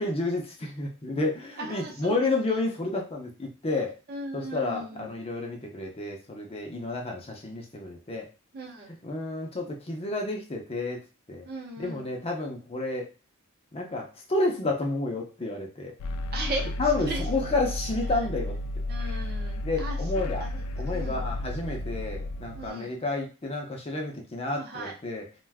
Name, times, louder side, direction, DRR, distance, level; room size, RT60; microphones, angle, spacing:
voice 1, 0.0-4.0 4.3-8.3 9.0-11.0 11.3-11.5 11.8-13.1 13.7-15.9 16.8-18.5 19.6-20.4 20.8-25.2, left 2 dB, 25° left, 1 dB, 0.5 m, -30 dB
voice 2, 1.6-2.6 4.1-5.1 8.5-8.9 11.5-12.1 16.3-16.7 17.0-17.2 18.1-18.3 18.9-21.2 22.5-22.9 24.5-24.9, right 2 dB, 45° right, 0 dB, 0.7 m, -38 dB
sound 1, 16.0-22.7, left 1 dB, 85° left, 0.3 m, -32 dB
2.4 x 2.2 x 3.4 m, 0.32 s
head